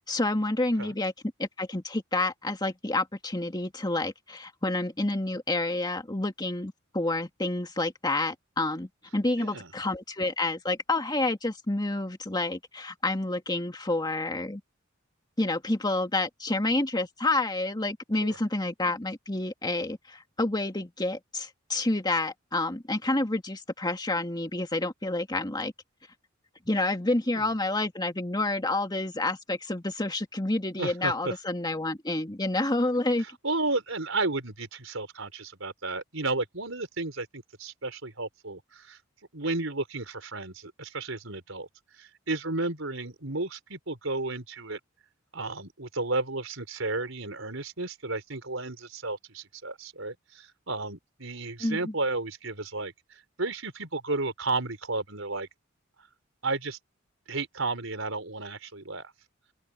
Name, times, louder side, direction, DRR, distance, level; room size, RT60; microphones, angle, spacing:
voice 1, 0.1-1.1 1.4-14.6 15.4-25.7 26.7-33.2 51.6-51.9, left 2 dB, 20° left, 2.2 m, -29 dB
voice 2, 9.4-9.7 18.2-18.4 27.3-27.5 30.8-31.4 33.4-39.0 39.3-41.7 41.9-44.8 45.3-55.5 56.4-56.8 57.3-59.1, right 3 dB, 70° right, 5.5 m, -33 dB
open air
head